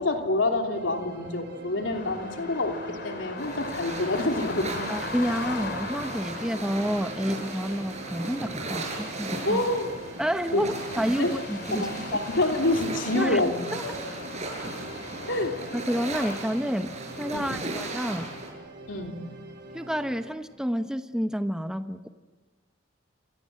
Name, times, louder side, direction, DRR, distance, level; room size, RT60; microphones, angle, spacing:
voice 1, 0.0-4.9 9.4-9.9 10.5-10.6 10.9-11.4 11.6-13.6 13.8-14.0 15.3-15.5 17.3-17.6 18.9-19.2, left 2 dB, 75° left, 3 dB, 3.2 m, -27 dB
sound 1, 0.7-20.3, right 2 dB, 60° right, 5.2 m, -44 dB
sound 2, 1.9-16.4, left 3 dB, 55° left, 3.0 m, -40 dB
sound 3, 3.4-18.5, right 2 dB, 35° right, 7.5 m, -37 dB
voice 2, 4.9-9.6 10.2-12.2 13.1-13.4 13.7-13.8 15.7-18.3 19.7-22.1, equal, 5° right, 8 dB, 1.0 m, -29 dB
28.5 x 26.5 x 7.7 m, 1.3 s
head